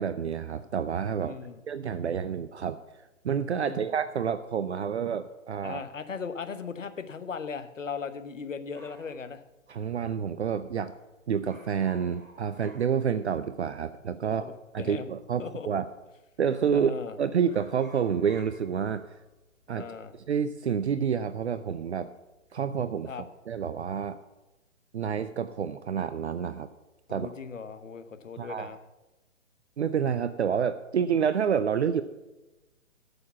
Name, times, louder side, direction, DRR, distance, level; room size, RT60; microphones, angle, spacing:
voice 1, 0.0-1.4 1.7-2.8 3.2-5.8 9.7-10.9 11.3-14.4 14.7-15.9 16.4-19.1 19.7-19.9 20.1-22.1 22.5-23.1 23.5-24.2 24.9-26.7 27.1-27.3 28.4-28.7 29.8-32.0, right 7 dB, 55° right, 11 dB, 0.6 m, -28 dB
voice 2, 1.2-1.6 3.6-3.9 5.6-9.4 14.2-15.1 15.4-15.7 16.7-17.2 19.7-20.1 23.1-23.2 27.1-28.8, left 5 dB, 70° left, 10 dB, 1.1 m, -38 dB
sound 1, 8.7-10.2 10.5-10.6 10.8-11.1 11.3-13.6 13.9-14.0 14.8-15.4 15.8-16.0 16.3-17.0 17.3-21.9 22.2-22.7, right 1 dB, 15° right, 3.9 m, -55 dB
11.5 x 6.9 x 7.2 m, 1.0 s
figure-of-eight pair, 130°, 39 cm